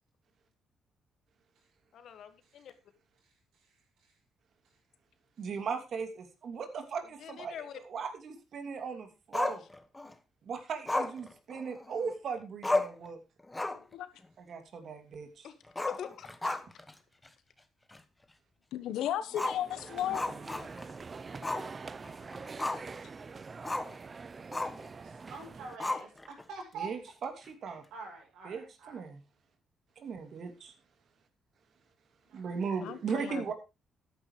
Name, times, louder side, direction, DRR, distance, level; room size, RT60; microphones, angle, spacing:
voice 1, 1.9-2.7 7.2-7.8 9.4-9.6 15.4-15.5 15.9-16.5, left 8 dB, 70° left, 1.8 m, -44 dB
voice 2, 5.4-9.6 10.4-13.2 14.4-15.5 26.7-27.8 28.4-29.2 30.0-30.7 32.3-33.5, right 5 dB, 60° right, 2.8 m, -38 dB
Growling, 9.3-10.1 10.9-12.1 12.4-12.5 12.6-13.1 13.4-13.9 14.2-14.3 15.7-16.9 17.2-17.3 17.9-18.0 19.3-20.9 21.4-21.7 22.0-23.0 23.6-24.0 24.5-24.9 25.8-26.4, left 2 dB, 15° left, 1.2 m, -34 dB
voice 3, 13.7-14.1 18.7-20.2 32.8-33.5, left 11 dB, 85° left, 1.1 m, -35 dB
sound 1, 19.4-25.8, right 4 dB, 35° right, 0.6 m, -45 dB
voice 4, 25.0-26.9 27.9-29.1, right 4 dB, 85° right, 7.1 m, -45 dB
13.5 x 10.5 x 3.2 m
cardioid pair, 90°, 0 cm